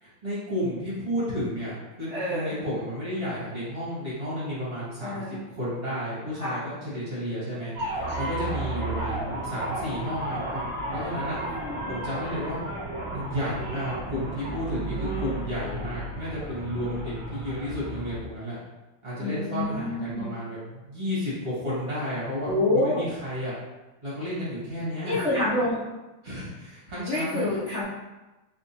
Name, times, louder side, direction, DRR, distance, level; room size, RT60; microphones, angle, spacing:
voice 1, 0.0-7.7 8.1-11.4 11.9-12.6 13.1-18.6 19.0-23.5 24.0-25.2 26.2-27.6, equal, 30° right, -10 dB, 1.5 m, -32 dB
voice 2, 2.1-2.6 5.0-5.4 6.4-6.6 9.1-9.4 11.4-11.9 19.2-20.3 22.4-23.0 25.0-25.8 27.1-27.8, left 1 dB, 70° left, -10 dB, 0.6 m, -28 dB
sound 1, 7.7-18.2, right 2 dB, 90° right, 0.4 m, -33 dB
3.5 x 3.4 x 2.8 m, 1.1 s
omnidirectional pair, 2.4 m